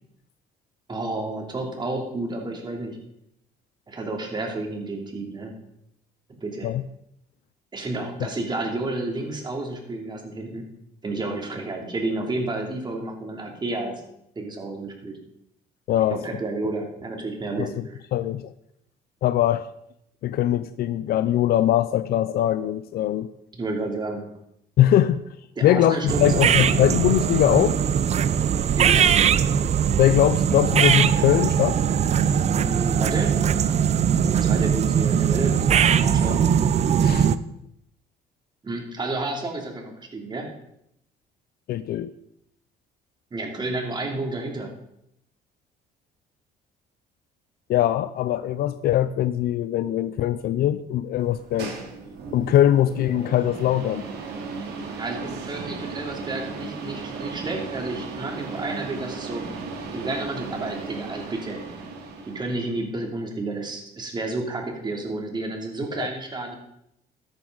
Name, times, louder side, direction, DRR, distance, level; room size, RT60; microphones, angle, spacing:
voice 1, 0.9-3.0 3.9-5.5 6.4-6.7 7.7-10.6 11.0-13.9 14.4-15.2 16.1-18.0 23.5-24.2 25.6-26.8 28.8-29.1 32.4-33.4 34.4-36.4 38.6-40.5 43.3-44.7 55.0-59.4 59.9-61.6 62.3-66.6, right 2 dB, 25° right, 1 dB, 2.9 m, -31 dB
voice 2, 15.9-16.2 17.6-18.5 19.2-19.7 20.2-23.3 24.8-25.2 25.6-27.8 30.0-31.8 37.0-37.3 41.7-42.1 47.7-51.8 52.3-54.1 66.0-66.1, left 12 dB, 65° left, 13 dB, 0.5 m, -21 dB
sound 1, 26.1-37.4, right 8 dB, 40° right, 0.6 m, -20 dB
sound 2, 51.2-62.8, right 4 dB, 75° right, 2.7 m, -36 dB
13.5 x 10.5 x 4.0 m, 0.77 s
cardioid pair, 110°, 17 cm